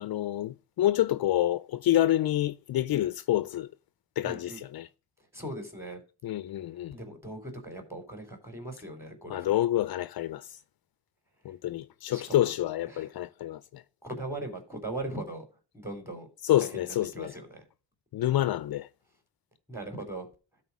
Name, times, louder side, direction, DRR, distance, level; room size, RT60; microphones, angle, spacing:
voice 1, 0.0-3.7 4.2-4.9 6.2-6.9 9.3-10.4 11.5-13.6 16.4-17.3 18.1-18.9, left 13 dB, 65° left, 0.5 m, -27 dB
voice 2, 4.2-4.6 5.3-6.0 6.9-9.5 12.1-12.5 12.9-13.1 14.0-15.5 15.7-16.3 16.6-17.6 19.7-20.3, right 1 dB, 5° right, 3.8 m, -39 dB
12.5 x 4.3 x 6.0 m
cardioid pair, 70°, 40 cm